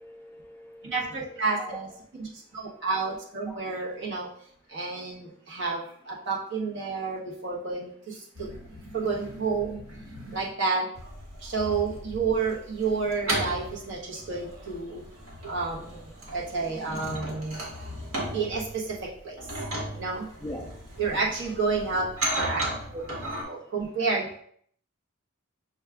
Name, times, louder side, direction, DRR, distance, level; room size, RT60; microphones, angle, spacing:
voice 1, 0.0-1.8 2.2-2.8 3.5-3.6 11.4-11.5 19.9-20.0 20.4-20.8 21.1-21.3, left 1 dB, 10° left, 0 dB, 0.3 m, -43 dB
voice 2, 0.8-1.9 2.2-4.3 4.7-8.5 8.9-9.8 10.3-10.9 11.4-15.0 15.5-17.6 18.3-19.4 19.9-20.3 21.0-22.1 22.4-24.4, right 4 dB, 55° right, -4 dB, 1.1 m, -30 dB
sound 1, 8.3-10.5 11.0-23.4, right 1 dB, 80° right, 1.4 m, -36 dB
6.2 x 2.3 x 3.5 m, 0.63 s
head